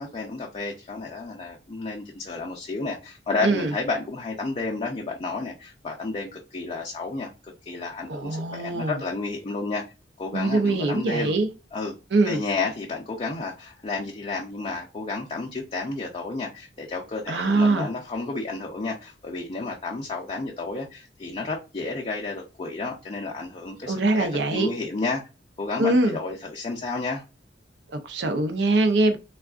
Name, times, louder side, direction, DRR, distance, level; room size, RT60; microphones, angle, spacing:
voice 1, 0.0-9.8 10.2-11.4 11.7-11.9 12.2-25.2 25.6-27.2, left 3 dB, 30° left, 0.5 m, -31 dB
voice 2, 3.4-3.7 8.1-9.0 10.3-11.5 12.1-12.4 17.3-17.9 23.9-24.7 25.8-26.2 27.9-29.2, right 2 dB, 65° right, 0.5 m, -23 dB
3.5 x 2.3 x 2.3 m
head